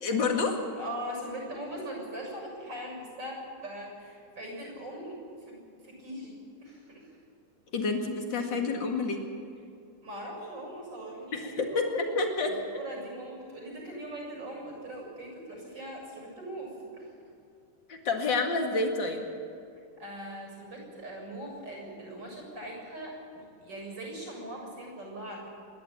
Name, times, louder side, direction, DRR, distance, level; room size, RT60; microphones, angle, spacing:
voice 1, 0.0-0.6 7.7-9.2 11.3-12.6 17.9-19.3, left 3 dB, 65° left, 2 dB, 2.8 m, -29 dB
voice 2, 0.8-5.2 5.5-5.6 5.8-7.1 10.0-12.1 12.5-17.1 20.0-25.5, right 1 dB, 65° right, -1 dB, 7.9 m, -41 dB
26.5 x 11.5 x 9.0 m, 2.3 s
omnidirectional pair, 2.2 m